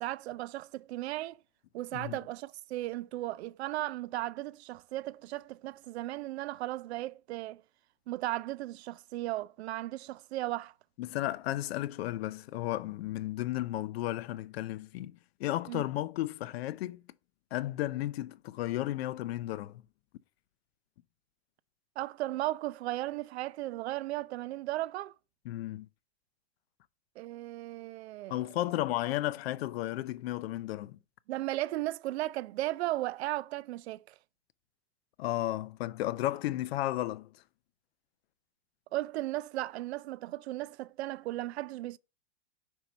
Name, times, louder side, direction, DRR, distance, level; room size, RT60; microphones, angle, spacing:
voice 1, 0.0-1.4 1.7-7.6 8.1-10.7 15.7-15.9 22.0-25.1 27.2-28.4 31.3-34.2 38.9-42.0, right 16 dB, 70° right, 0.5 m, -36 dB
voice 2, 11.0-17.0 17.5-19.8 25.5-25.9 28.3-31.0 35.2-37.3, left 15 dB, 65° left, 0.5 m, -34 dB
5.3 x 4.5 x 4.4 m
hypercardioid pair, 135°, 33 cm